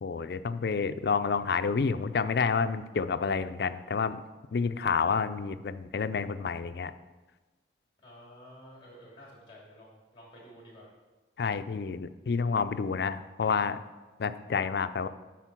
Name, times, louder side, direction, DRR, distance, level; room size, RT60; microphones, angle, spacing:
voice 1, 0.0-4.2 4.5-6.9 11.4-13.8 14.2-15.1, left 5 dB, 65° left, 11 dB, 0.4 m, -29 dB
voice 2, 8.0-10.9, equal, 25° left, -3 dB, 2.9 m, -51 dB
10.0 x 4.4 x 6.0 m, 1.2 s
head